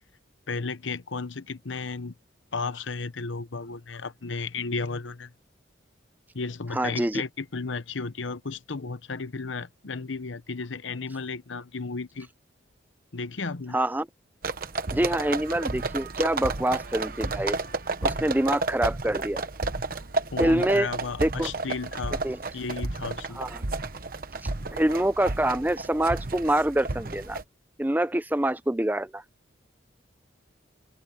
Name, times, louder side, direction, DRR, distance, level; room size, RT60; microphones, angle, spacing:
voice 1, 0.5-2.1 2.5-5.3 6.3-12.3 13.1-13.8 20.3-22.2 22.5-23.4, left 4 dB, 85° left, 0.9 m, -34 dB
voice 2, 6.7-7.2 13.7-14.1 14.9-17.6 18.0-19.4 20.4-20.9 21.2-21.5 22.2-22.4 23.4-23.6 24.7-27.4 27.8-29.2, right 1 dB, 10° right, 0.5 m, -25 dB
sound 1, 14.4-27.4, right 3 dB, 50° right, 1.1 m, -32 dB
head